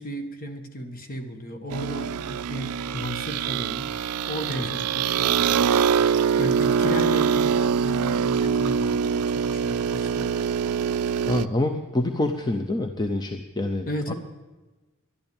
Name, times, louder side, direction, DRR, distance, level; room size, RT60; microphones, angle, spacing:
voice 1, 0.0-3.9 4.3-5.9 6.4-10.3 13.9-14.1, equal, 40° left, 5 dB, 1.6 m, -34 dB
sound 1, 1.7-11.5, right 7 dB, 90° right, 0.4 m, -24 dB
voice 2, 11.3-14.1, left 2 dB, 20° left, 5 dB, 0.6 m, -26 dB
11.5 x 11.5 x 8.7 m, 1.2 s
head